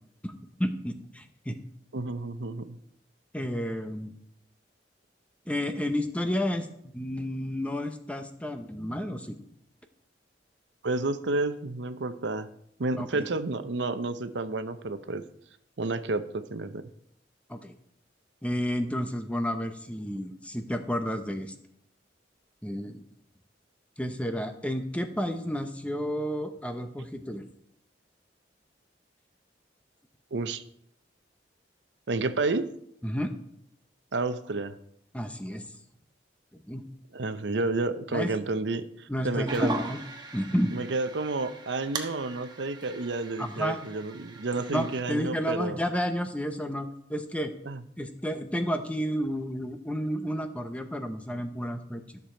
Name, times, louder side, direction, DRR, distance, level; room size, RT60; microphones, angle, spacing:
voice 1, 0.6-1.6 3.3-4.1 5.5-9.4 13.0-13.3 17.5-17.7 18.4-21.5 22.6-23.0 24.0-27.4 33.0-33.3 35.1-35.6 36.7-36.8 38.1-38.3 39.1-40.0 40.3-40.8 43.4-43.8 44.7-47.5 48.0-52.2, equal, 5° left, 7 dB, 0.8 m, -31 dB
voice 2, 1.9-2.8 10.8-12.5 12.8-15.3 15.8-16.9 30.3-30.6 32.1-32.7 34.1-34.7 37.1-39.8 40.7-45.8 47.7-47.8, right 3 dB, 75° right, 11 dB, 0.7 m, -30 dB
sound 1, 39.5-45.0, right 1 dB, 25° right, 1.1 m, -37 dB
13.0 x 6.8 x 4.4 m, 0.70 s
head